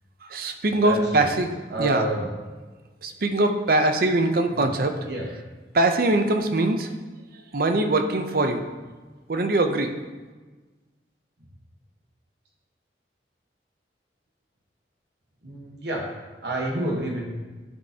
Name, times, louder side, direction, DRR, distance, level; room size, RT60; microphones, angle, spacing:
voice 1, 0.2-2.1 3.0-5.0 5.7-6.9 7.5-8.6 9.3-9.9, right 2 dB, 55° right, 6 dB, 0.6 m, -22 dB
voice 2, 0.8-1.3 1.7-2.2 4.6-4.7 5.0-5.2 15.4-16.1 16.4-17.2, right 1 dB, 70° right, -1 dB, 1.2 m, -29 dB
11.0 x 5.4 x 2.8 m, 1.3 s
head